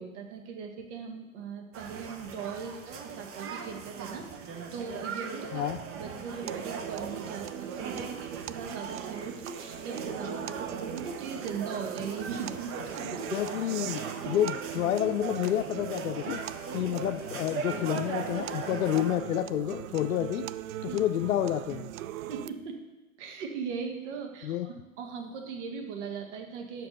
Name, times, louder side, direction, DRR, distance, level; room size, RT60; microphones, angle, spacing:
voice 1, 0.0-4.3 4.7-5.6 5.9-13.2 14.2-14.3 20.9-21.0 22.3-22.8 23.2-26.9, right 5 dB, 55° right, 3 dB, 1.7 m, -39 dB
sound 1, 1.7-19.2, right 6 dB, 30° right, 1.0 m, -39 dB
sound 2, 6.5-22.5, right 12 dB, 75° right, 0.5 m, -41 dB
voice 2, 13.0-14.0 14.3-16.4 16.7-20.5 20.8-21.9 24.4-24.7, left 12 dB, 85° left, 7 dB, 0.6 m, -29 dB
7.6 x 6.0 x 6.7 m, 1.1 s
hypercardioid pair, 115°, 41 cm